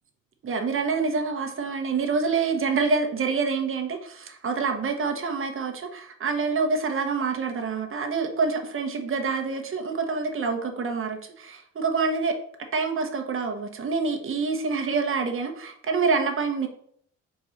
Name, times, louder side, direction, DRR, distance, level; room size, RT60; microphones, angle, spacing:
voice 1, 0.4-12.4 12.7-16.7, right 4 dB, 45° right, 4 dB, 1.2 m, -26 dB
4.6 x 4.1 x 5.0 m, 0.64 s
cardioid pair, 90°, 30 cm